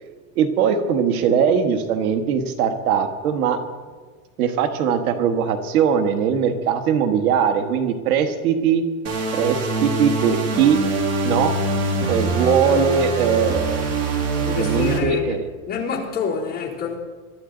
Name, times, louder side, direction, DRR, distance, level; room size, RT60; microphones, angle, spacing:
voice 1, 0.4-3.6 4.4-8.8 9.3-10.8 11.2-11.5 12.1-13.9 14.5-15.5, right 7 dB, 90° right, 1.7 m, -20 dB
sound 1, 9.0-15.0, right 2 dB, 55° right, 3.5 m, -24 dB
voice 2, 12.6-13.2 14.4-15.4 15.7-17.0, left 6 dB, 20° left, 3.2 m, -28 dB
23.0 x 13.0 x 4.0 m
supercardioid pair, 165°, 42 cm